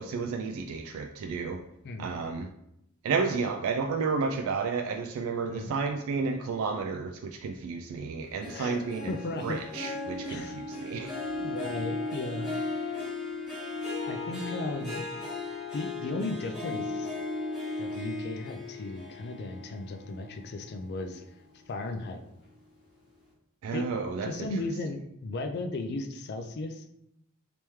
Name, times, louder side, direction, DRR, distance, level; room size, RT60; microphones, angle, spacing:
voice 1, 0.0-1.6 2.0-2.5 3.0-9.2 9.4-11.1 23.6-24.5, right 4 dB, 75° right, 5 dB, 0.3 m, -31 dB
voice 2, 1.8-2.2 5.4-5.7 8.5-8.8 9.1-9.6 10.3-10.6 11.4-12.6 14.1-15.1 15.7-17.1 17.8-21.2 21.7-22.2 23.7-23.9 24.2-26.9, left 2 dB, 50° left, 6 dB, 0.4 m, -35 dB
Harp, 8.4-21.1 21.6-22.0 22.4-22.5, left 2 dB, 5° right, 1.0 m, -36 dB
3.4 x 2.9 x 3.1 m, 0.80 s
head